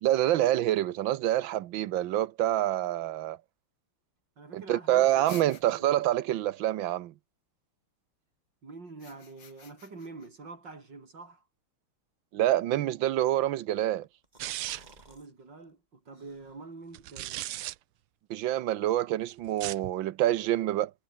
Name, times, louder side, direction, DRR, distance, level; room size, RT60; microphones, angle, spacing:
voice 1, 0.0-3.4 4.5-7.1 12.3-14.1 18.3-20.9, right 13 dB, 70° right, 1.5 m, -27 dB
voice 2, 4.4-5.1 5.8-6.0 8.6-11.4 15.1-17.4, right 3 dB, 55° right, 4.9 m, -46 dB
sound 1, 5.2-6.1 8.9-10.3, left 7 dB, 80° left, 3.2 m, -50 dB
sound 2, 14.0-15.3 15.6-15.7 16.1-16.8, right 1 dB, 20° right, 4.6 m, -57 dB
sound 3, 14.4-15.0 16.9-17.7 19.5-19.9, right 15 dB, 85° right, 1.6 m, -36 dB
omnidirectional pair, 2.3 m